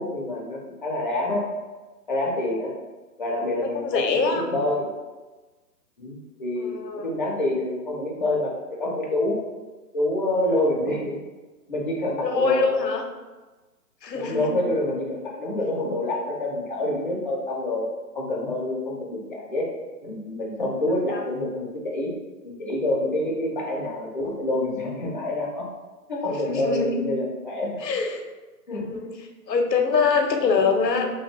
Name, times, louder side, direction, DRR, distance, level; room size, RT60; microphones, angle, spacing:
voice 1, 0.0-1.5 2.1-2.8 3.2-4.9 6.0-9.4 9.9-11.2 11.7-12.8 14.1-19.7 20.0-22.1 22.4-25.7 26.1-27.9 28.7-28.9, left 1 dB, 35° left, -3 dB, 0.4 m, -27 dB
voice 2, 3.7-4.4 6.6-7.1 12.2-13.0 14.0-14.6 21.1-21.2 26.3-27.0 27.8-28.2 28.7-31.1, left 4 dB, 90° left, 4 dB, 0.7 m, -24 dB
2.8 x 2.1 x 3.4 m, 1.2 s
hypercardioid pair, 145°, 49 cm